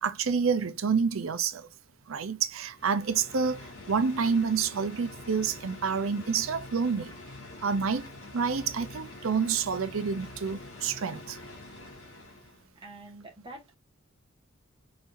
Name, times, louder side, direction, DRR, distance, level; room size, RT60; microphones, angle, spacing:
voice 1, 0.0-1.7 2.1-7.1 7.6-11.4, right 5 dB, 75° right, 0.6 m, -28 dB
sound 1, 2.6-12.7, left 2 dB, 80° left, 2.1 m, -46 dB
voice 2, 12.7-13.8, right 2 dB, 25° right, 1.5 m, -46 dB
4.2 x 4.0 x 2.6 m
head